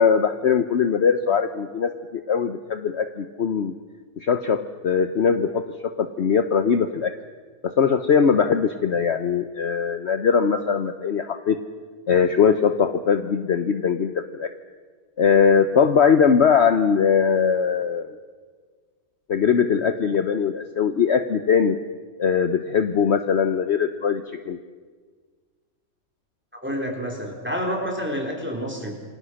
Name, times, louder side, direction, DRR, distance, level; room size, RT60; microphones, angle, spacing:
voice 1, 0.0-3.7 4.2-7.1 7.6-11.6 12.1-14.5 15.2-18.1 19.3-21.8 22.2-24.6, left 6 dB, 55° left, 9 dB, 1.1 m, -21 dB
voice 2, 26.6-28.9, equal, 5° right, 1 dB, 4.2 m, -28 dB
28.0 x 24.0 x 6.4 m, 1.5 s
omnidirectional pair, 1.5 m